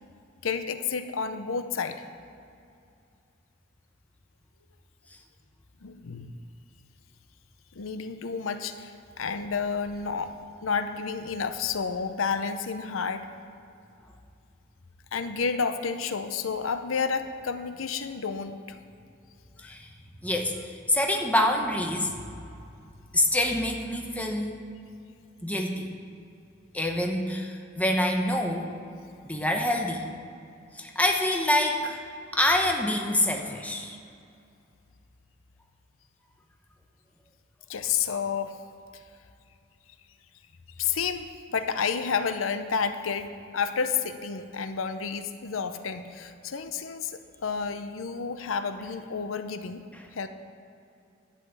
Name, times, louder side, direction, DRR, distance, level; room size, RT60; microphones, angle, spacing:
voice 1, 0.4-2.0 5.8-6.3 7.7-10.3 10.6-13.3 15.1-18.8 19.6-19.7 37.7-38.6 38.9-39.0 40.8-43.3 43.5-49.8 50.1-50.3, left 6 dB, 90° left, 9 dB, 0.7 m, -30 dB
voice 2, 19.6-19.9 20.2-22.1 23.1-24.6 25.4-25.9 26.7-28.7 29.2-30.1 30.7-32.0 32.3-34.0 49.9-50.1, left 1 dB, 10° left, 2 dB, 0.9 m, -26 dB
11.5 x 5.6 x 8.1 m, 2.5 s
head